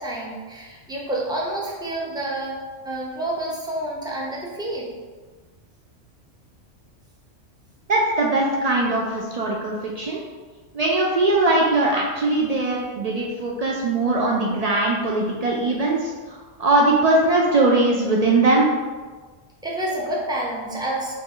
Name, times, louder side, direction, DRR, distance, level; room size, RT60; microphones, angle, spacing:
voice 1, 0.0-2.6 2.8-4.9 15.5-15.6 19.6-21.1, right 1 dB, 5° right, -4 dB, 0.5 m, -28 dB
voice 2, 7.9-10.2 10.7-18.7, right 2 dB, 85° right, -2 dB, 0.3 m, -20 dB
4.8 x 2.5 x 3.7 m, 1.4 s
omnidirectional pair, 1.3 m